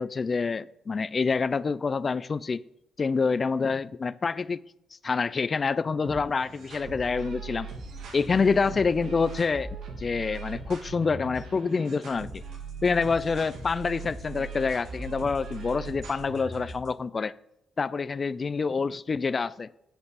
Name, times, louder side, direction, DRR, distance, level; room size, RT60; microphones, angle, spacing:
voice 1, 0.0-2.6 3.0-4.6 5.0-7.7 8.1-9.7 10.0-12.4 12.8-17.3 17.8-19.7, left 4 dB, 35° left, 0.3 m, -27 dB
sound 1, 6.0-16.9, right 4 dB, 80° right, 2.4 m, -40 dB
8.3 x 8.0 x 4.1 m
cardioid pair, 90°, 0 cm